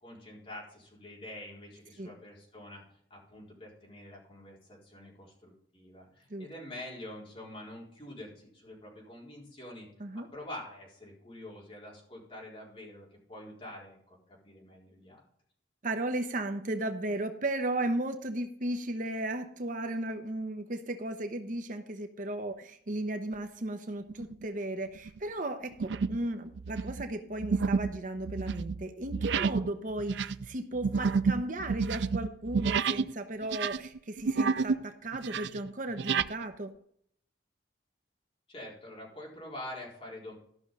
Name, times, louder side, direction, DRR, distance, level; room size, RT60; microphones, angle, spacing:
voice 1, 0.0-2.8 3.1-9.9 10.1-15.2 38.5-40.3, left 1 dB, 30° left, -4 dB, 4.2 m, -46 dB
voice 2, 15.8-36.7, right 1 dB, 45° right, 7 dB, 0.8 m, -35 dB
sound 1, 24.1-24.4 25.0-25.2 25.8-26.3 26.5-33.1 33.4-34.8 35.1-36.3, right 5 dB, 70° right, 0.4 m, -30 dB
12.5 x 6.1 x 5.3 m, 0.67 s
head